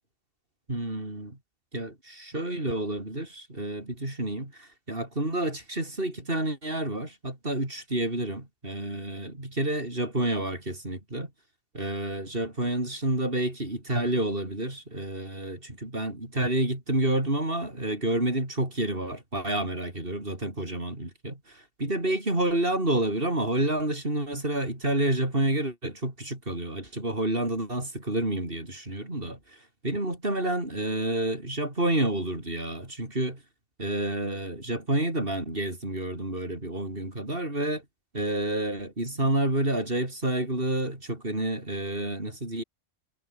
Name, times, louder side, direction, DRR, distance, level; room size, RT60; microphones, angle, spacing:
voice 1, 0.7-1.4 1.7-11.3 11.7-29.6 29.8-33.4 33.8-37.8 38.1-42.6, right 1 dB, 50° right, 5.8 m, -29 dB
omnidirectional pair, 1.2 m